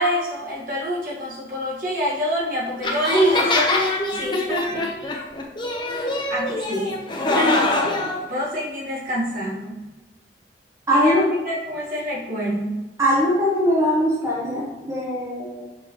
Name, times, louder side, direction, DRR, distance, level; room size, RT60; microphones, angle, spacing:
voice 1, 0.0-3.7 4.1-4.8 6.3-7.0 7.3-7.9 8.3-9.8 10.9-12.8, equal, 50° right, -5 dB, 1.6 m, -25 dB
sound 1, 2.8-8.2, left 2 dB, 25° left, 0.7 m, -24 dB
voice 2, 10.9-11.3 13.0-15.7, equal, 15° right, -6 dB, 1.0 m, -21 dB
6.0 x 5.6 x 3.0 m, 1.1 s
head